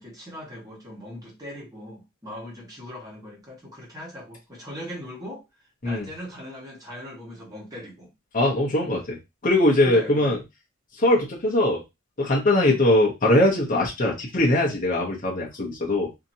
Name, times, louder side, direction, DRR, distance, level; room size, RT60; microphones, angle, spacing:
voice 1, 0.0-5.4 5.8-8.1 8.8-9.0 9.8-10.4 12.5-12.8, equal, 20° right, 1.3 m, -39 dB
voice 2, 8.3-9.2 9.4-10.4 11.0-11.8 12.2-16.1, left 1 dB, 40° left, 0.8 m, -21 dB
2.8 x 2.7 x 2.7 m
head